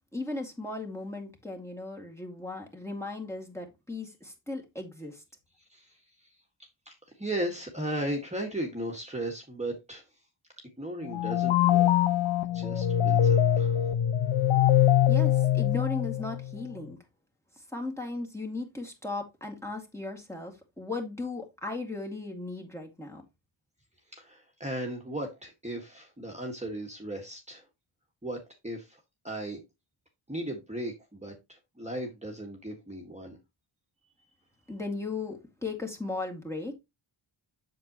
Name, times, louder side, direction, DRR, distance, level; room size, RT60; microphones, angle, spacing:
voice 1, 0.1-5.2 15.1-17.0 17.7-23.2 34.7-36.7, left 2 dB, 5° left, 2.1 m, -36 dB
voice 2, 6.9-10.0 10.8-11.9 12.5-13.8 24.1-27.7 28.2-29.6 30.3-33.4, right 1 dB, 15° right, 1.7 m, -36 dB
sound 1, 11.1-16.5, left 11 dB, 75° left, 0.9 m, -23 dB
7.7 x 6.9 x 3.0 m
wide cardioid pair, 95°, 48 cm